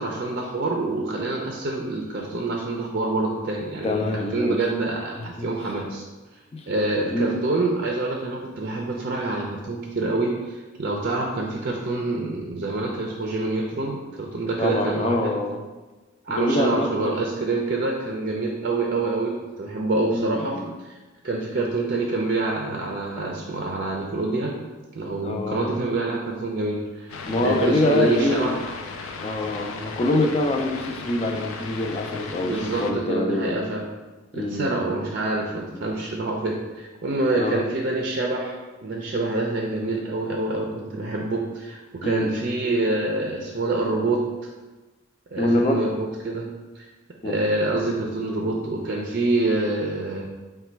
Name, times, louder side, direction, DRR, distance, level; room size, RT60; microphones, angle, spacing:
voice 1, 0.0-4.0 4.3-6.0 6.7-15.4 16.2-21.0 21.2-24.5 24.9-27.1 27.4-28.6 32.4-33.9 34.3-38.5 38.8-44.2 45.3-46.5 46.8-46.9 47.2-50.3, right 2 dB, 45° right, 0 dB, 0.4 m, -26 dB
voice 2, 3.8-4.7 5.2-5.5 6.5-6.7 7.1-7.4 14.6-15.6 16.4-17.2 20.0-20.7 25.2-25.8 27.3-28.6 29.2-33.6 34.3-34.8 35.7-35.8 37.4-37.6 42.0-42.4 45.4-45.9 47.2-47.4, left 1 dB, 30° left, 3 dB, 0.4 m, -25 dB
sound 1, 27.1-32.9, left 4 dB, 90° left, 0.4 m, -36 dB
4.1 x 2.2 x 4.4 m, 1.2 s
head